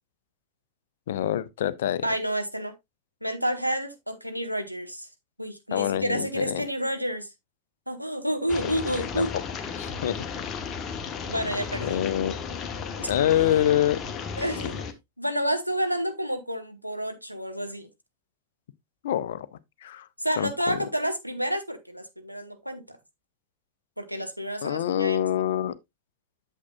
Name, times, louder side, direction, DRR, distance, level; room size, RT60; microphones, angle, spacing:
voice 1, 1.1-2.1 5.7-6.7 8.6-9.3 9.8-10.2 11.8-12.3 13.1-14.0 14.7-14.8 19.0-19.5 19.8-20.1 20.4-20.8 24.6-25.8, left 11 dB, 60° left, 0.5 m, -26 dB
voice 2, 2.0-2.7 3.2-5.1 5.4-7.3 7.9-9.3 11.3-12.0 13.0-13.1 14.4-14.7 15.2-17.9 20.2-22.8 24.0-25.2, equal, 90° right, 1.0 m, -29 dB
sound 1, 8.5-14.9, left 6 dB, 25° left, 1.1 m, -34 dB
8.4 x 7.2 x 2.3 m
figure-of-eight pair, 90°, 0 cm